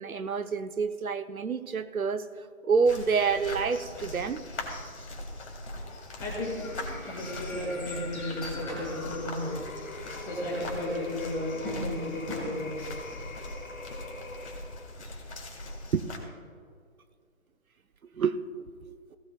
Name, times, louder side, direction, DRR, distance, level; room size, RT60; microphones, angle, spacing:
voice 1, 0.0-2.2 2.6-4.4 15.9-16.0 18.1-18.4, right 5 dB, 90° right, 10 dB, 0.9 m, -27 dB
sound 1, 2.9-16.2, left 2 dB, 55° left, 3.0 m, -41 dB
voice 2, 6.2-6.6 7.0-12.9, left 1 dB, 5° left, -3 dB, 1.7 m, -34 dB
sound 2, 6.6-14.9, left 3 dB, 85° left, 4.2 m, -44 dB
18.5 x 18.0 x 2.3 m, 2.1 s
figure-of-eight pair, 165°, 41 cm